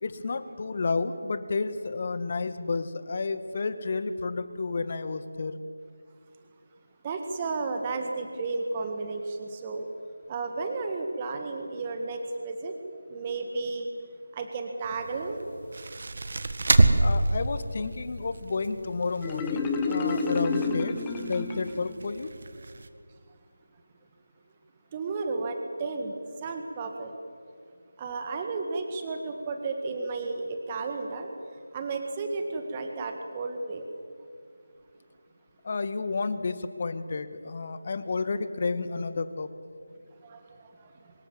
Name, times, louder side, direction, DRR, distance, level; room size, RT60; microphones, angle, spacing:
voice 1, 0.0-5.5 17.0-22.3 35.6-39.5, left 4 dB, 40° left, 12 dB, 1.5 m, -31 dB
voice 2, 7.0-9.9 10.3-12.7 13.1-13.9 14.3-15.4 24.9-26.1 26.4-27.1 28.0-31.3 31.7-33.9 40.2-40.4, right 3 dB, 20° right, 5 dB, 1.8 m, -33 dB
sound 1, 14.8-22.9, right 2 dB, 50° right, 1.7 m, -29 dB
Marimba xylophone, 19.2-22.0, left 4 dB, 10° left, 1.3 m, -29 dB
25.0 x 21.5 x 7.6 m, 2.3 s
figure-of-eight pair, 160°, 0 cm